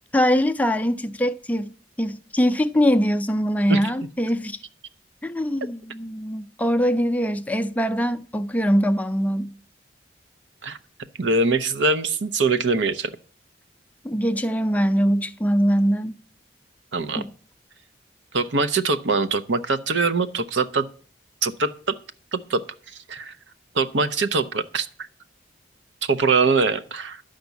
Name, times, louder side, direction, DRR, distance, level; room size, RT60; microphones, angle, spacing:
voice 1, 0.1-4.6 5.2-9.5 14.0-16.2 17.2-17.3, equal, 10° left, 0.4 m, -22 dB
voice 2, 11.2-13.1 16.9-17.3 18.3-20.9 21.4-22.0 22.3-22.6 22.9-23.3 23.7-24.9 26.1-27.2, right 4 dB, 85° right, 0.8 m, -23 dB
12.0 x 5.1 x 8.2 m
head